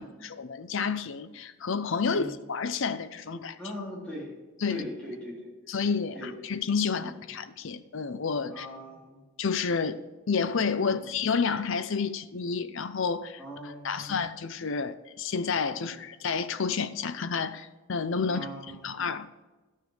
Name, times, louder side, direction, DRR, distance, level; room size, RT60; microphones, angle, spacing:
voice 1, 0.0-3.6 4.6-4.8 5.7-8.7 9.4-13.4 13.8-18.5 18.8-19.4, left 5 dB, 60° left, 0.6 m, -30 dB
voice 2, 3.3-4.4 4.7-5.9 6.1-6.3 6.9-7.2 8.5-9.2 10.8-11.1 13.4-14.2 15.8-16.0 18.2-18.8, equal, 5° left, 3.7 m, -41 dB
12.5 x 6.5 x 5.0 m
head